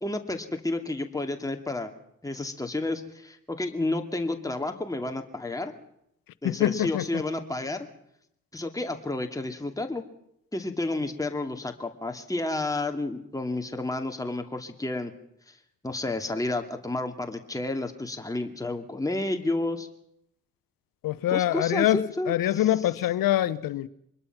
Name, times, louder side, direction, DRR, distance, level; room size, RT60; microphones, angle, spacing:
voice 1, 0.0-1.9 2.2-5.7 6.4-7.9 8.5-10.0 10.5-15.1 15.5-15.6 15.8-19.9 21.3-22.7, left 2 dB, 10° left, 2.4 m, -31 dB
voice 2, 6.4-7.2 21.0-23.9, left 13 dB, 70° left, 0.9 m, -25 dB
24.0 x 21.0 x 6.0 m
hypercardioid pair, 40°, 35 cm